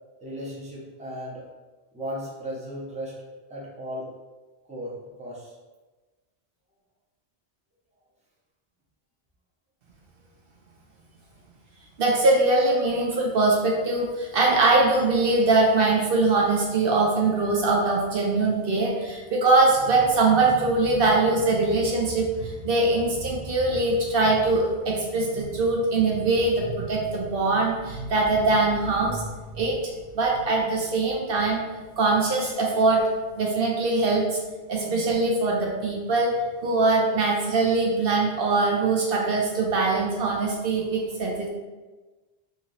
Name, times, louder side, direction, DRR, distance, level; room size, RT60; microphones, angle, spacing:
voice 1, 0.2-1.4 1.9-3.2 3.5-4.1 4.7-4.9 5.2-5.5, equal, 10° right, -6 dB, 0.6 m, -35 dB
voice 2, 12.0-29.3 29.5-29.8 30.1-31.6 32.0-33.0 33.4-34.4 34.7-36.3 36.6-41.5, right 3 dB, 65° right, -1 dB, 0.8 m, -22 dB
2.9 x 2.8 x 3.8 m, 1.2 s
omnidirectional pair, 1.1 m